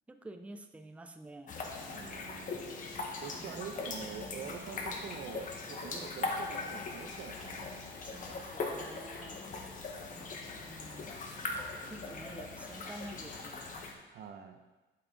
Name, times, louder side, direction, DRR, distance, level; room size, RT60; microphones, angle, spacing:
voice 1, 0.1-1.6 3.3-3.9 8.0-9.4 10.1-11.2 11.8-13.8, right 1 dB, 5° right, 7 dB, 0.5 m, -50 dB
sound 1, 1.5-13.9, left 3 dB, 40° left, 1.3 m, -40 dB
voice 2, 1.9-2.8 3.2-7.8 11.9-12.1 14.1-14.6, right 7 dB, 55° right, 5 dB, 0.8 m, -46 dB
9.5 x 8.5 x 3.9 m, 1.1 s
cardioid pair, 155°, 20 cm